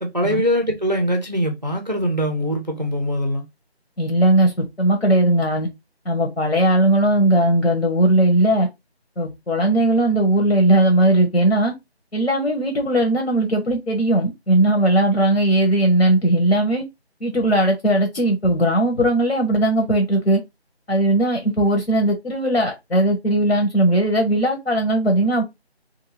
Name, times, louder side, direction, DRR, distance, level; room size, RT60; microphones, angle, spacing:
voice 1, 0.0-3.5, equal, 40° right, 0.4 m, -22 dB
voice 2, 4.0-5.7 6.0-8.7 9.2-11.7 12.1-16.8 17.2-20.4 20.9-25.4, right 1 dB, 80° left, 1.0 m, -18 dB
2.6 x 2.5 x 2.8 m
figure-of-eight pair, 165°, 33 cm